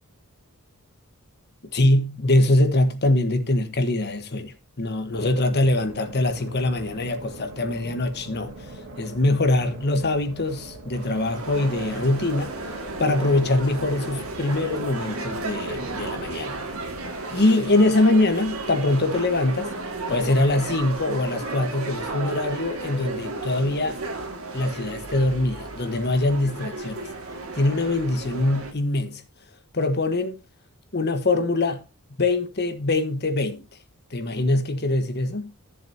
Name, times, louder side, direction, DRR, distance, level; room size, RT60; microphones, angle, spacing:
voice 1, 1.7-8.5 9.0-12.5 13.0-16.6 17.3-19.7 20.1-24.0 24.5-27.1 27.5-29.2 29.7-30.4 30.9-31.8 32.2-33.6 34.1-35.5, left 2 dB, 50° left, 1.4 m, -23 dB
sound 1, 5.1-17.1, right 1 dB, 85° right, 2.6 m, -42 dB
sound 2, 10.9-28.7, right 2 dB, 70° right, 2.3 m, -33 dB
15.0 x 7.2 x 2.9 m
head